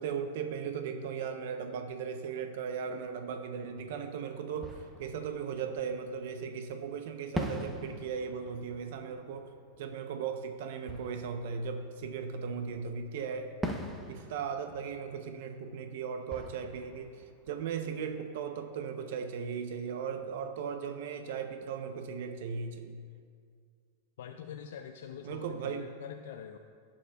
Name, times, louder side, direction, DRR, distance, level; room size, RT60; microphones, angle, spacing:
voice 1, 0.0-9.5 9.8-13.6 14.1-23.0 25.2-25.9, right 6 dB, 70° right, 6 dB, 0.6 m, -37 dB
Fireworks, 4.0-4.1 4.6-6.5 7.3-12.7 13.6-18.4, right 1 dB, 5° right, 0.8 m, -43 dB
voice 2, 24.2-26.6, left 8 dB, 80° left, 5 dB, 0.4 m, -45 dB
15.5 x 7.1 x 2.3 m, 2.1 s
supercardioid pair, 135°, 0 cm